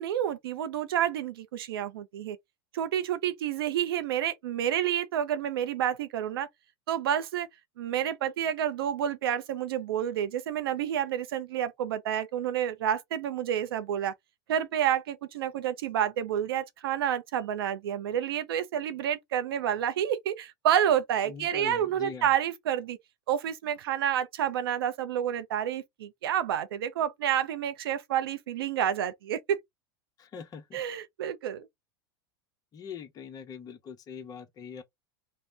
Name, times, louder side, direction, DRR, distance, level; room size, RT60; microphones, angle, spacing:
voice 1, 0.0-2.4 2.7-6.5 6.9-7.5 7.8-14.1 14.5-23.0 23.3-29.6 30.7-31.7, right 10 dB, 80° right, 0.5 m, -29 dB
voice 2, 21.2-22.3 30.2-30.8 32.7-34.8, left 7 dB, 30° left, 0.7 m, -42 dB
2.7 x 2.0 x 3.2 m
hypercardioid pair, 110°, 12 cm